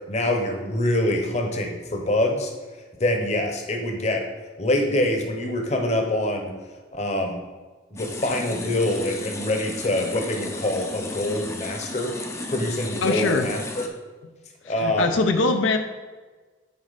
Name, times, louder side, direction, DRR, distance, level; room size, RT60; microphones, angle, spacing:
voice 1, 0.1-2.5 3.0-4.2 4.6-6.5 6.9-7.4 7.9-12.1 12.5-13.6 14.6-15.2, left 1 dB, 35° left, 3 dB, 0.9 m, -25 dB
sound 1, 8.0-13.9, left 2 dB, 15° left, 0.5 m, -34 dB
voice 2, 13.0-13.5 14.6-15.8, left 3 dB, 85° left, 6 dB, 0.6 m, -22 dB
9.5 x 4.2 x 4.1 m, 1.4 s
head